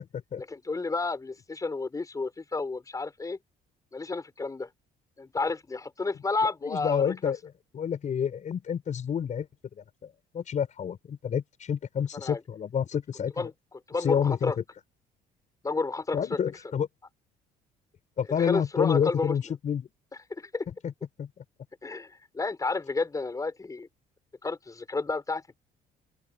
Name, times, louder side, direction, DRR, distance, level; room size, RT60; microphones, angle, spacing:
voice 1, 0.5-3.4 3.9-4.7 5.2-7.3 12.1-12.4 13.4-13.5 13.9-14.6 15.6-16.4 18.4-19.3 20.4-20.7 21.8-23.9 24.4-25.5, left 3 dB, 20° left, 5.5 m, -31 dB
voice 2, 6.6-9.5 9.8-13.5 14.0-14.5 16.1-16.9 18.2-19.9 20.8-20.9 21.2-21.3, left 8 dB, 45° left, 5.1 m, -29 dB
open air
cardioid pair, 110°, 17 cm